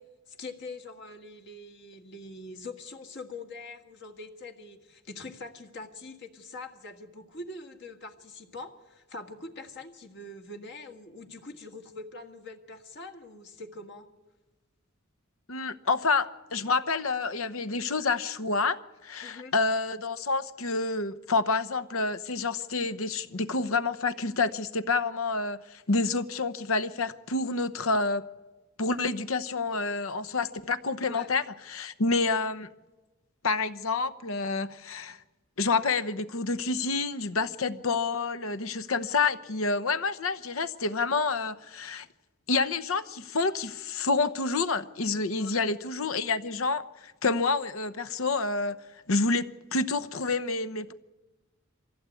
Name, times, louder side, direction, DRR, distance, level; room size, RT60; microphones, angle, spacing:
voice 1, 0.0-14.1 19.2-19.5 31.0-31.3 45.4-45.6, left 2 dB, 60° left, 4 dB, 1.8 m, -43 dB
voice 2, 15.5-28.2 28.8-32.7 33.4-35.2 35.6-42.1 42.5-48.8 49.1-49.5 49.7-50.9, left 3 dB, 75° left, 13 dB, 0.9 m, -28 dB
24.0 x 15.5 x 8.4 m, 1.1 s
head